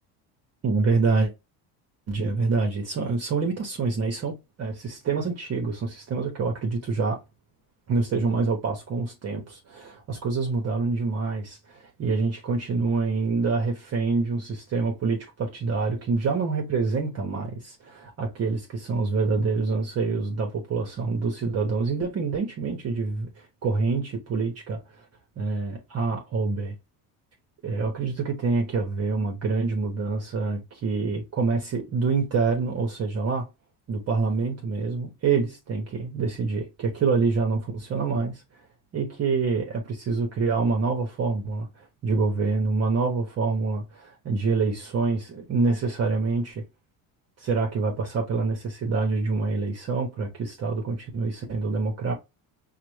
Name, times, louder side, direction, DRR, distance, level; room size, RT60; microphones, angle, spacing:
voice 1, 0.6-1.3 2.1-7.2 7.9-23.3 23.6-25.0 25.4-26.7 27.6-33.5 33.9-38.4 38.9-46.6 47.4-52.1, right 4 dB, 40° right, 0.9 m, -26 dB
5.6 x 2.1 x 3.1 m
cardioid pair, 130°, 40 cm